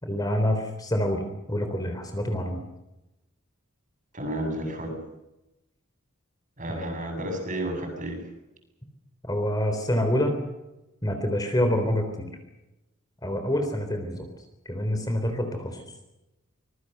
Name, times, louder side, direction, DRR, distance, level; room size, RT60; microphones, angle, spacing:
voice 1, 0.0-2.6 6.7-6.9 9.2-10.4 11.0-12.3 13.2-14.3 14.7-15.8, equal, 20° left, 5 dB, 3.7 m, -27 dB
voice 2, 4.1-5.0 6.6-8.2, right 1 dB, 40° right, 4 dB, 7.7 m, -31 dB
25.5 x 22.5 x 6.8 m, 0.95 s
head